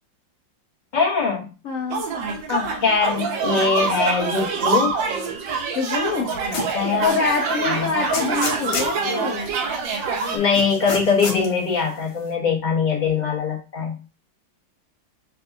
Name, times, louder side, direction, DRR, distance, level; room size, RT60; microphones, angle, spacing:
voice 1, 0.9-1.5 2.5-4.9 6.2-7.1 7.6-7.9 10.3-14.0, left 5 dB, 25° left, -2 dB, 1.3 m, -22 dB
voice 2, 1.6-2.1 5.7-6.3 7.0-9.5, left 4 dB, 55° left, 0 dB, 1.0 m, -25 dB
sound 1, 1.9-10.4, right 5 dB, 75° right, 1.6 m, -25 dB
sound 2, 6.5-6.8 7.3-7.4 8.1-9.0 10.5-11.5, left 4 dB, 85° left, 2.0 m, -28 dB
7.0 x 2.7 x 2.7 m, 0.33 s
omnidirectional pair, 2.0 m